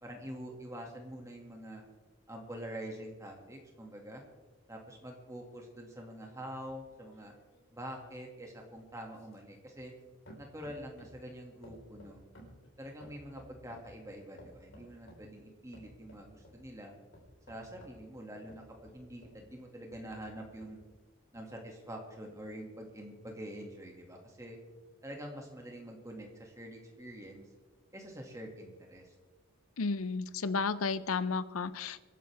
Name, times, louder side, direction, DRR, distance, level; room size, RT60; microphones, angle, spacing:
voice 1, 0.0-1.8 2.3-4.2 4.7-7.3 7.7-9.9 10.4-12.2 12.8-16.9 17.5-20.8 21.3-24.6 25.0-27.5 27.9-29.1, equal, 15° right, 1 dB, 2.2 m, -46 dB
sound 1, 6.9-10.0 10.3-11.3 11.6-13.9 14.4-15.3 15.7-16.6 17.1-19.4 19.9-20.8 21.3-21.4, equal, 65° left, 4.5 m, -56 dB
voice 2, 29.8-32.0, left 4 dB, 80° left, 15 dB, 0.6 m, -33 dB
26.0 x 11.0 x 3.5 m, 1.3 s
head